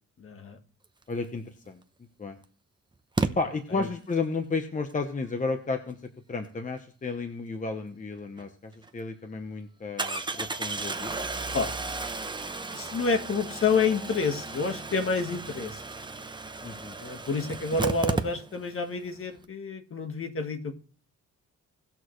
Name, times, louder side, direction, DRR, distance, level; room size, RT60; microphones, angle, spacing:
voice 1, 0.2-0.6 3.2-3.3 3.8-3.9 11.5-12.1 12.7-15.8 17.0-20.7, left 4 dB, 45° left, 6 dB, 1.5 m, -29 dB
voice 2, 1.1-1.8 2.2-2.4 3.4-6.0 6.3-11.2 16.6-17.0, left 4 dB, 25° left, 6 dB, 1.0 m, -32 dB
Engine starting, 1.7-1.8 3.2-3.3 8.4-8.5 8.8-8.9 10.0-18.8 19.1-19.2 19.4-19.5, right 3 dB, 15° right, 0.7 m, -34 dB
18.5 x 6.3 x 3.1 m, 0.41 s
wide cardioid pair, 135°, 31 cm